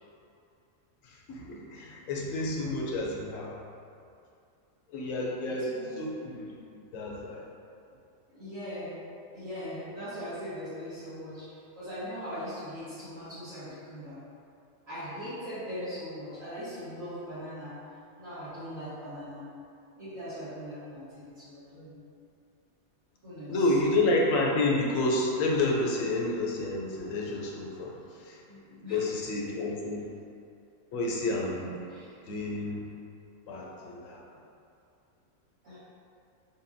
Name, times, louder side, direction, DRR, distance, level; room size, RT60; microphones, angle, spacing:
voice 1, 1.0-3.6 4.9-6.5 6.9-7.5 23.5-28.4 28.9-30.0 30.9-31.9 32.3-32.8 33.5-34.2, left 2 dB, 75° left, -3 dB, 1.0 m, -30 dB
voice 2, 5.4-6.0 8.3-9.0 9.3-14.2 14.9-17.8 18.2-19.5 20.0-22.0 23.2-23.6 28.5-29.0 31.9-32.1 35.6-35.8, equal, 70° right, -19 dB, 2.0 m, -40 dB
5.4 x 2.1 x 2.6 m, 2.5 s
omnidirectional pair, 1.4 m